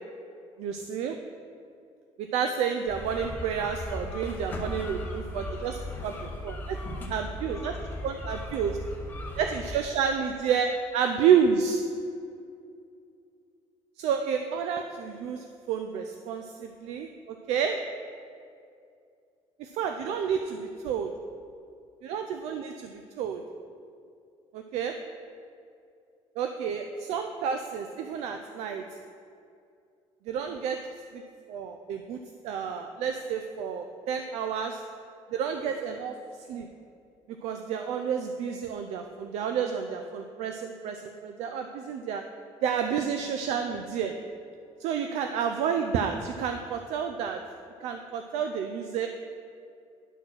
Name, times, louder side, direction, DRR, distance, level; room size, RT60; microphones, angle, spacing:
voice 1, 0.6-1.2 2.2-6.1 6.4-6.8 7.1-7.8 8.0-8.8 9.4-11.8 14.0-17.8 19.6-21.1 22.0-23.4 24.5-25.0 26.4-28.8 30.3-30.8 31.1-31.2 31.5-34.8 35.3-36.1 36.5-36.7 37.4-42.2 42.6-44.1 44.8-47.4 47.8-49.1, right 7 dB, 65° right, 6 dB, 0.4 m, -30 dB
sound 1, 2.9-9.8, left 1 dB, 15° left, 0.7 m, -37 dB
9.9 x 4.3 x 6.2 m, 2.5 s
cardioid pair, 175°, 12 cm